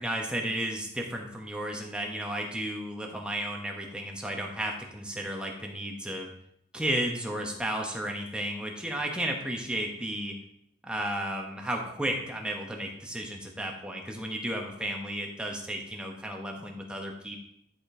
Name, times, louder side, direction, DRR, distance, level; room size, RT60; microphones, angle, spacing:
voice 1, 0.0-6.3 6.7-10.4 10.8-17.4, right 1 dB, 5° right, 1 dB, 1.0 m, -33 dB
11.0 x 5.1 x 3.7 m, 0.74 s
head